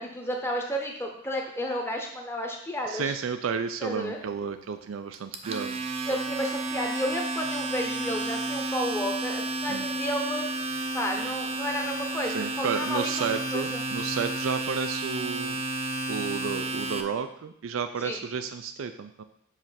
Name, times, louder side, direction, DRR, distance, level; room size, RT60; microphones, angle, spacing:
voice 1, 0.0-3.2 3.8-4.2 6.0-10.5 10.9-13.8 18.0-18.2, equal, 10° left, 2 dB, 0.9 m, -32 dB
voice 2, 2.9-5.8 9.7-9.9 12.3-15.6 16.1-19.2, right 6 dB, 85° right, 9 dB, 0.4 m, -32 dB
Domestic sounds home sounds, 5.1-17.0, right 2 dB, 30° right, 0.5 m, -31 dB
7.4 x 3.3 x 5.7 m, 0.68 s
head